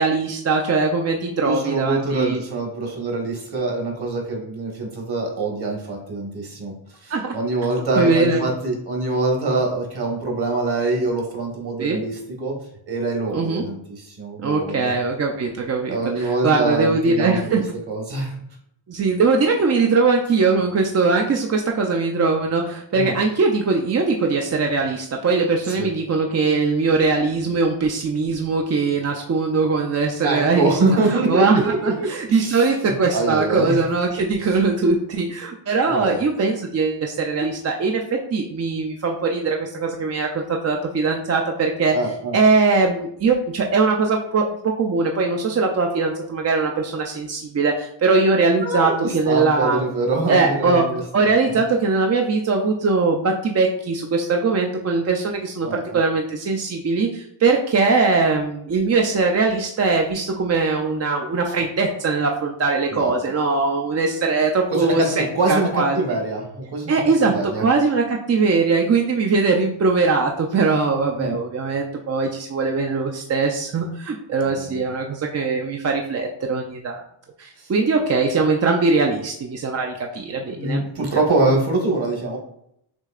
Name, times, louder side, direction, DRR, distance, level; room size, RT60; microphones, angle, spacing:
voice 1, 0.0-2.4 7.1-7.4 8.0-8.4 11.8-12.0 13.3-13.6 14.4-17.6 18.9-30.8 31.1-41.9 42.3-49.8 50.3-50.9 51.1-66.0 66.9-77.0 77.4-80.8, right 4 dB, 35° right, 1 dB, 0.4 m, -21 dB
voice 2, 1.4-6.7 7.0-12.5 12.9-13.8 14.1-14.9 15.9-17.4 17.9-18.3 22.9-23.1 25.8-25.9 30.2-33.8 34.4-34.5 35.9-36.2 41.9-42.4 48.6-51.3 55.6-56.0 62.9-63.1 64.7-67.6 71.2-71.4 74.5-74.8 77.6-77.7 80.5-82.4, right 2 dB, 50° right, 1 dB, 1.4 m, -24 dB
6.3 x 2.7 x 2.4 m, 0.74 s
cardioid pair, 95°, 50 cm